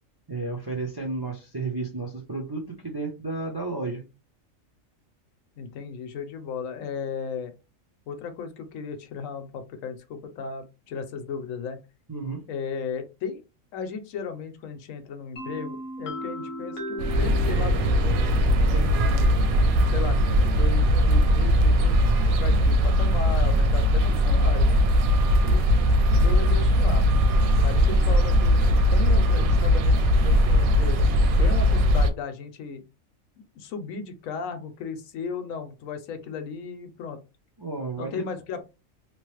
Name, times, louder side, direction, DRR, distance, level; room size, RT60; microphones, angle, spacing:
voice 1, 0.3-4.0 12.1-12.4 37.6-38.2, right 3 dB, 30° right, -1 dB, 0.4 m, -32 dB
voice 2, 5.6-7.5 8.1-11.8 12.5-13.4 13.7-18.2 18.7-19.4 19.9-21.9 22.3-24.9 25.4-25.7 26.1-27.1 27.6-31.0 31.4-32.8 33.6-37.2 38.0-38.6, left 6 dB, 75° left, 8 dB, 1.0 m, -35 dB
sound 1, 15.4-23.0, equal, 45° left, 0.8 m, -38 dB
sound 2, 17.0-32.1, equal, 90° right, 1.0 m, -20 dB
3.0 x 2.0 x 3.1 m, 0.28 s
omnidirectional pair, 1.4 m